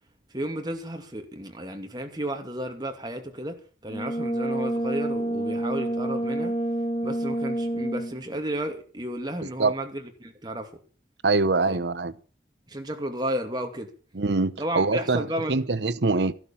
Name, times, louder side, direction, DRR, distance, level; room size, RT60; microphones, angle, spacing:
voice 1, 0.3-3.6 3.8-6.5 7.0-10.7 11.7-11.8 12.7-13.9 14.6-15.6, right 1 dB, 25° right, 2.5 m, -33 dB
Brass instrument, 3.9-8.3, right 1 dB, 35° left, 1.6 m, -28 dB
voice 2, 9.4-9.7 11.2-12.1 14.1-16.3, right 3 dB, 80° right, 0.9 m, -24 dB
14.0 x 12.0 x 7.2 m
head